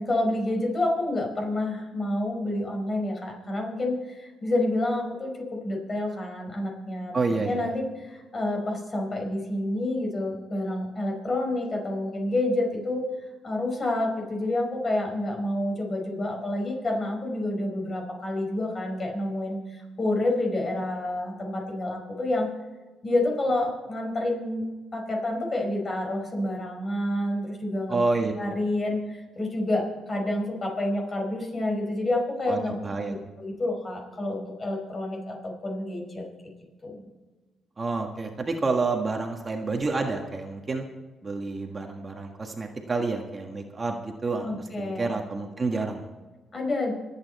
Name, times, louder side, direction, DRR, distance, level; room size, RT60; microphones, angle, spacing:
voice 1, 0.0-7.2 7.4-13.0 13.4-22.5 23.0-24.6 24.9-27.9 28.4-32.8 33.4-36.2 36.8-37.1 44.4-45.1 46.5-46.9, left 1 dB, 35° left, 1 dB, 5.1 m, -28 dB
voice 2, 7.1-7.7 27.9-28.3 32.5-33.1 37.8-40.8 41.2-44.5 44.8-46.1, right 3 dB, 30° right, 3 dB, 1.6 m, -29 dB
26.5 x 8.9 x 4.3 m, 1.3 s
cardioid pair, 90°, 0 cm